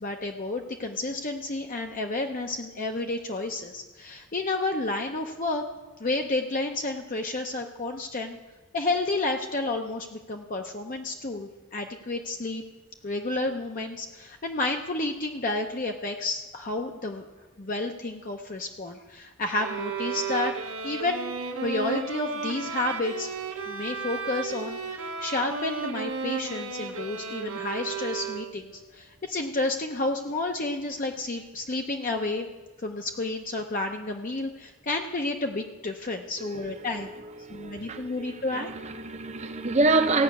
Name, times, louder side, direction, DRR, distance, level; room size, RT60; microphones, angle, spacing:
voice 1, 0.0-5.7 6.0-8.4 8.7-12.6 13.0-17.3 17.6-21.2 21.6-23.3 23.7-32.5 32.8-37.1 37.5-38.7, left 2 dB, 35° left, 3 dB, 0.6 m, -31 dB
sound 1, 19.5-28.7, right 5 dB, 70° right, 1.1 m, -34 dB
voice 2, 36.4-40.2, right 2 dB, 30° right, 7 dB, 0.7 m, -28 dB
16.0 x 5.7 x 8.3 m, 1.2 s
head